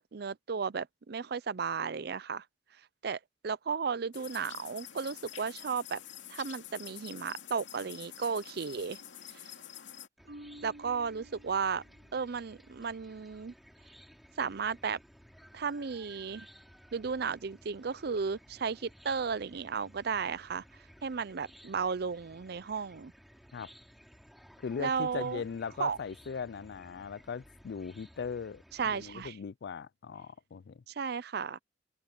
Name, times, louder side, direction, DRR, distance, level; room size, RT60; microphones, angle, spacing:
voice 1, 0.0-2.4 3.0-6.0 6.3-9.0 9.4-9.5 10.6-11.8 12.1-13.5 14.4-15.0 15.5-16.5 16.9-20.6 21.0-23.1 24.8-25.4 25.8-26.0 28.8-29.3 30.9-31.6, right 5 dB, 60° right, 0.5 m, -34 dB
sound 1, 4.1-10.1, left 11 dB, 90° left, 2.5 m, -47 dB
Chicken rooster / Cricket, 10.2-29.3, equal, ahead, 3.0 m, -57 dB
Marimba xylophone, 10.3-12.3, right 1 dB, 85° right, 4.8 m, -52 dB
voice 2, 24.6-30.8, left 6 dB, 60° left, 0.4 m, -39 dB
head